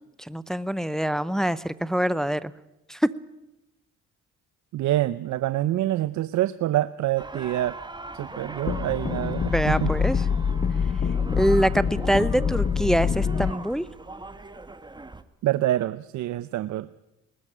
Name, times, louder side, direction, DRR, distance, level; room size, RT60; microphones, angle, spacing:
voice 1, 0.2-2.5 2.9-3.0 9.2-10.2 11.4-13.8, equal, ahead, 16 dB, 0.6 m, -25 dB
voice 2, 4.7-7.8 8.1-9.9 15.4-16.9, right 14 dB, 70° right, 15 dB, 0.7 m, -26 dB
sound 1, 7.2-15.2, right 2 dB, 15° right, 1.2 m, -40 dB
sound 2, 8.7-13.5, left 6 dB, 35° left, 1.0 m, -25 dB
20.0 x 13.0 x 10.0 m, 0.92 s
cardioid pair, 90°, 30 cm